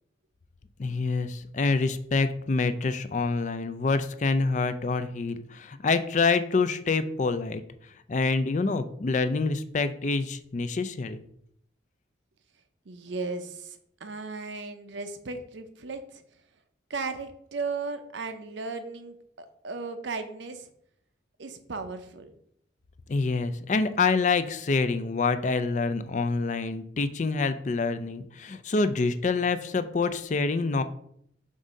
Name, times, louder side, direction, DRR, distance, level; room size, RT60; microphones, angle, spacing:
voice 1, 0.8-7.6 8.1-11.2 23.1-30.8, left 4 dB, 40° left, 11 dB, 0.4 m, -26 dB
voice 2, 12.9-16.2 16.9-20.7 21.4-22.3, right 4 dB, 75° right, 8 dB, 0.7 m, -36 dB
7.2 x 2.7 x 5.1 m, 0.69 s
head